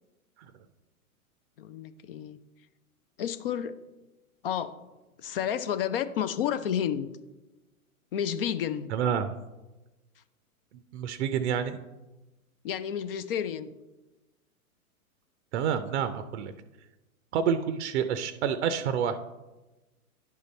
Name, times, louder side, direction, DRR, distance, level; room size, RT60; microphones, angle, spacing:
voice 1, 1.6-2.4 3.2-3.7 4.4-4.8 5.2-7.1 8.1-8.9 12.6-13.7, left 9 dB, 40° left, 12 dB, 0.4 m, -30 dB
voice 2, 8.9-9.3 10.9-11.8 15.5-16.5 17.3-19.2, right 8 dB, 50° right, 11 dB, 0.5 m, -28 dB
10.5 x 3.7 x 4.1 m, 1.1 s
hypercardioid pair, 120°, 44 cm